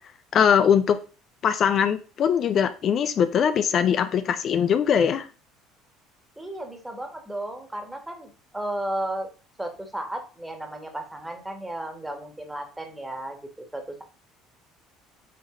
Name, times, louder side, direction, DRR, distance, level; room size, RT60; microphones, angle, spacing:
voice 1, 0.3-1.0 1.4-5.3, left 8 dB, 50° left, 10 dB, 0.5 m, -21 dB
voice 2, 6.4-9.3 9.6-14.0, right 1 dB, 10° right, 5 dB, 1.8 m, -34 dB
7.5 x 4.0 x 3.9 m, 0.35 s
hypercardioid pair, 60°, 0 cm